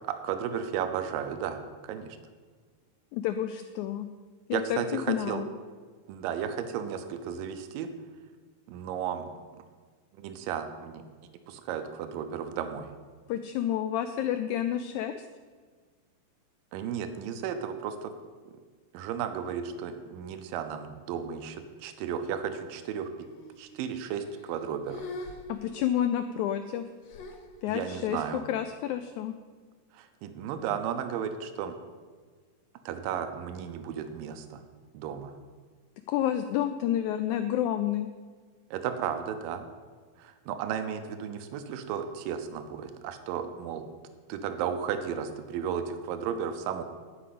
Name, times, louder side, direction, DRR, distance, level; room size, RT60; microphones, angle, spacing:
voice 1, 0.2-2.2 4.5-5.4 6.1-7.9 8.7-9.3 10.2-11.0 11.5-12.9 16.7-18.1 18.9-23.1 23.6-25.1 27.7-28.4 29.9-31.7 32.9-34.6 34.9-35.3 38.7-39.7 40.2-43.9 44.3-46.8, right 8 dB, 85° right, 8 dB, 2.4 m, -34 dB
voice 2, 3.1-4.1 4.5-4.8 5.1-5.5 13.3-15.2 25.5-26.8 27.6-29.3 36.1-38.1, left 11 dB, 90° left, 9 dB, 1.7 m, -29 dB
sound 1, 23.2-23.8 24.1-24.6 24.9-26.1 27.1-28.2, left 2 dB, 60° left, 2.0 m, -44 dB
11.5 x 5.2 x 8.3 m, 1.5 s
omnidirectional pair, 3.9 m